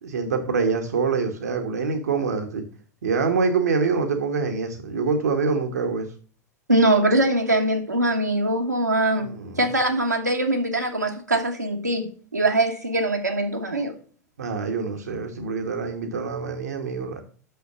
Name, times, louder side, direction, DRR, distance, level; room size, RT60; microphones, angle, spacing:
voice 1, 0.0-2.6 3.0-6.1 9.2-9.7 14.4-17.2, right 5 dB, 70° right, 5 dB, 1.2 m, -25 dB
voice 2, 6.7-9.3 9.6-12.1 12.3-13.9, right 1 dB, 90° right, 1 dB, 1.4 m, -22 dB
6.2 x 5.7 x 6.7 m, 0.43 s
figure-of-eight pair, 90°, 9 cm